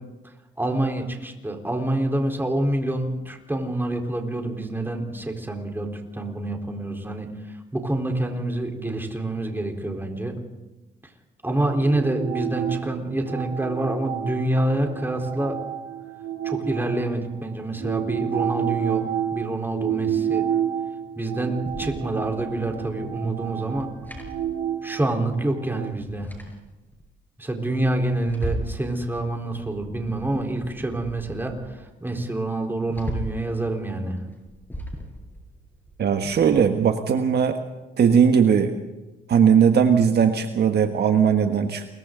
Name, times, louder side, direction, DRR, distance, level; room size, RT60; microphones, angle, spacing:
voice 1, 0.6-10.4 11.4-15.6 16.4-20.5 21.1-23.9 24.8-26.3 27.4-34.2, right 1 dB, 10° right, 3 dB, 4.1 m, -27 dB
sound 1, 11.5-17.3 17.7-25.9, right 9 dB, 90° right, 1.8 m, -30 dB
sound 2, 21.6-25.1 25.3-25.4 25.8-27.0 27.5-28.8 29.1-31.7 32.1-32.2 32.5-33.5 34.1-36.6, right 1 dB, 10° left, 7.2 m, -37 dB
voice 2, 36.0-37.6 38.0-38.7 39.3-41.9, right 7 dB, 55° right, 6 dB, 1.5 m, -19 dB
29.0 x 22.5 x 3.9 m, 1.1 s
cardioid pair, 90°, 20 cm